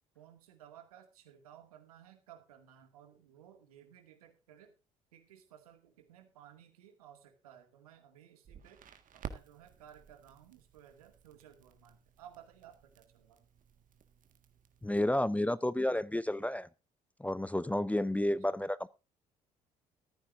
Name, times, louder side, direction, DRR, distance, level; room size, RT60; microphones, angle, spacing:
voice 1, 0.1-4.8 5.1-8.8 9.1-13.5, right 10 dB, 80° right, 6 dB, 2.2 m, -57 dB
Crackle, 8.4-15.0, right 7 dB, 45° right, 1.7 m, -52 dB
voice 2, 14.8-16.7 17.2-18.9, left 1 dB, 5° left, 18 dB, 0.6 m, -31 dB
15.0 x 14.0 x 2.6 m, 0.28 s
figure-of-eight pair, 50°, 19 cm